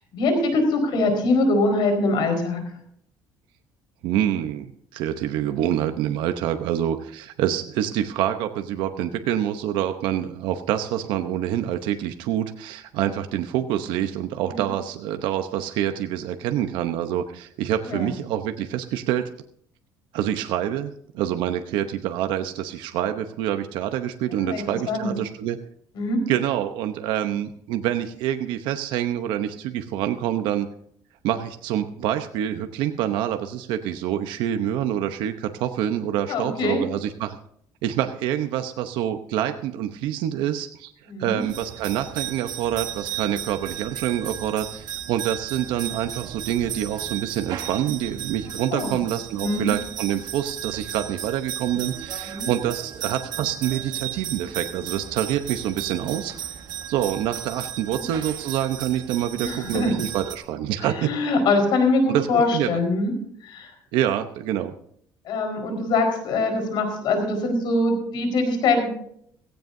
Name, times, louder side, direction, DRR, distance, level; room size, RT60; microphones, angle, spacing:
voice 1, 0.1-2.6 14.5-14.7 17.9-18.1 24.3-25.1 25.9-26.2 36.3-36.8 41.1-41.4 48.7-49.0 49.4-49.7 52.2-52.5 58.0-58.1 59.4-60.0 60.8-63.1 63.4-63.7 65.2-68.9, left 2 dB, 70° left, 5 dB, 4.6 m, -23 dB
voice 2, 4.0-19.3 20.1-25.6 26.3-30.7 31.2-37.4 37.8-40.9 41.2-56.4 56.9-61.1 62.1-62.8 63.9-64.7, right 11 dB, 90° right, 7 dB, 0.9 m, -26 dB
sound 1, 41.4-60.4, right 10 dB, 60° right, 1.6 m, -35 dB
17.0 x 16.0 x 2.7 m, 0.65 s
cardioid pair, 130°, 8 cm